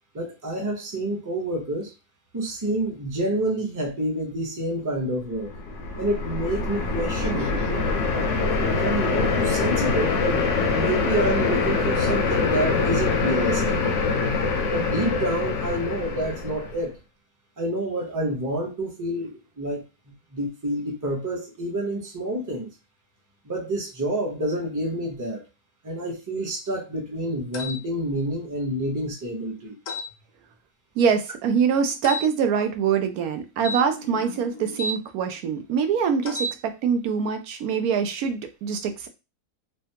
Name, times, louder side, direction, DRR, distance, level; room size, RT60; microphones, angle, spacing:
voice 1, 0.1-1.9 2.3-5.5 6.0-7.5 7.7-7.9 8.5-13.8 14.7-16.9 17.6-19.8 20.3-22.7 23.4-25.4 25.8-29.7, right 1 dB, 20° right, -1 dB, 0.6 m, -28 dB
sound 1, 5.4-16.8, left 4 dB, 65° left, 0.9 m, -24 dB
voice 2, 7.2-7.6 31.0-39.1, right 6 dB, 80° right, 6 dB, 1.0 m, -24 dB
sound 2, 27.5-27.8 29.9-30.1 32.0-32.3 33.6-35.0 36.2-36.6, equal, 85° left, 1.1 m, -32 dB
3.3 x 2.2 x 2.8 m, 0.26 s
omnidirectional pair, 1.6 m